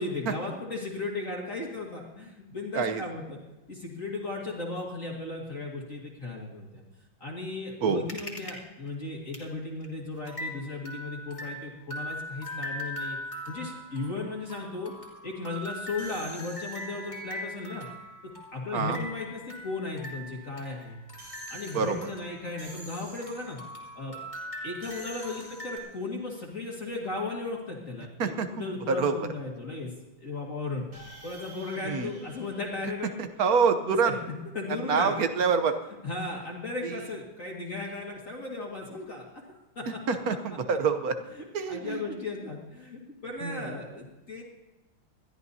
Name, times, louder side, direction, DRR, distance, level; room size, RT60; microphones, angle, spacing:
voice 1, 0.0-3.4 3.7-6.8 7.2-13.2 13.5-14.9 15.2-17.9 18.5-21.0 21.5-23.6 24.0-24.2 24.6-29.9 30.2-30.9 31.2-33.2 33.8-35.1 36.0-40.0 41.3-44.4, left 3 dB, 40° left, -2 dB, 2.3 m, -36 dB
sound 1, 8.1-8.6 8.9-9.0 9.3-9.5 9.8-9.9 10.3-23.0 23.2-25.8, equal, 15° left, 2.4 m, -41 dB
sound 2, 16.0-17.2 21.2-23.7 24.8-26.1 30.9-33.5, equal, 75° right, 5.0 m, -49 dB
voice 2, 33.4-34.2 34.7-35.7 36.8-36.9 40.1-41.2 41.5-42.0 43.4-43.6, right 5 dB, 55° right, 8 dB, 1.2 m, -26 dB
21.0 x 13.5 x 2.8 m, 1.1 s
omnidirectional pair, 2.2 m